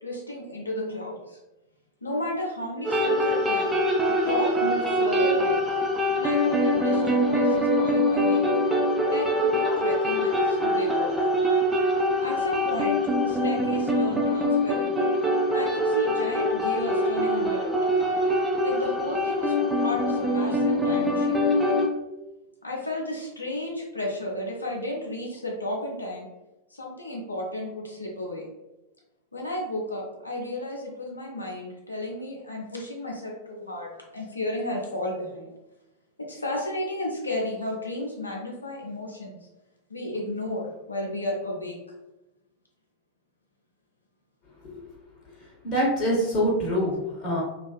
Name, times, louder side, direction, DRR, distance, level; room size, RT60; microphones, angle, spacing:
voice 1, 0.0-1.4 2.0-3.8 4.1-5.6 6.1-8.5 9.0-11.3 12.2-14.9 15.5-17.7 18.6-21.5 22.6-26.3 26.7-28.5 29.3-35.5 36.2-39.5 39.9-41.8, left 1 dB, 80° left, -1 dB, 0.4 m, -33 dB
sound 1, 2.8-21.9, equal, 10° right, 0.4 m, -24 dB
voice 2, 45.4-47.4, equal, 30° left, -4 dB, 0.7 m, -25 dB
2.4 x 2.3 x 2.3 m, 1.0 s
figure-of-eight pair, 90°, 0 cm